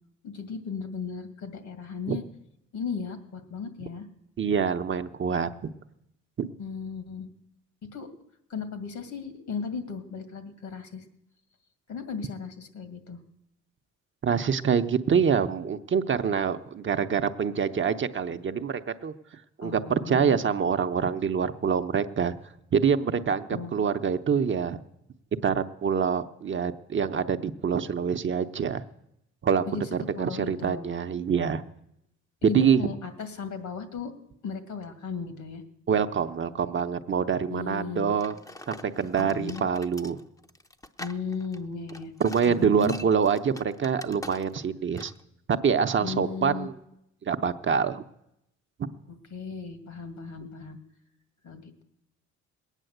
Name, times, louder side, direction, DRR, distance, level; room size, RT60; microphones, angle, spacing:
voice 1, 0.2-2.2 2.7-4.1 6.6-7.3 7.9-8.1 8.5-11.0 11.9-13.2 19.6-20.4 23.5-23.7 29.7-29.9 30.2-30.8 32.4-34.1 34.4-35.6 37.5-38.1 39.2-39.7 41.0-42.1 42.4-43.0 46.0-46.7 49.3-50.8 51.4-51.8, left 5 dB, 70° left, 10 dB, 2.2 m, -36 dB
voice 2, 4.4-5.7 6.4-6.5 14.2-19.1 19.6-22.4 22.7-24.8 25.4-28.8 29.4-29.6 29.9-31.6 32.4-32.8 35.9-38.3 38.7-40.2 42.2-45.1 45.5-46.7 47.3-48.0, right 7 dB, 40° right, 8 dB, 0.8 m, -25 dB
sound 1, 38.2-44.7 45.0-45.2, left 1 dB, 10° left, 0.7 m, -44 dB
20.0 x 9.1 x 7.9 m, 0.82 s
cardioid pair, 90°, 30 cm